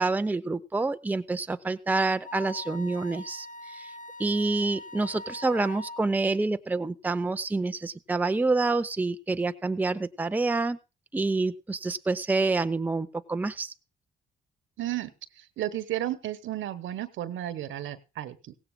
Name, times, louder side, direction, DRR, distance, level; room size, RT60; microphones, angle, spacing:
voice 1, 0.0-3.9 4.2-10.8 11.1-13.7, right 3 dB, 10° right, 9 dB, 0.5 m, -27 dB
Wind instrument woodwind instrument, 2.2-6.1, left 1 dB, 40° left, 0.9 m, -42 dB
voice 2, 14.8-18.5, right 12 dB, 75° right, 13 dB, 1.1 m, -33 dB
16.5 x 16.0 x 2.2 m, 0.30 s
cardioid pair, 90°, 20 cm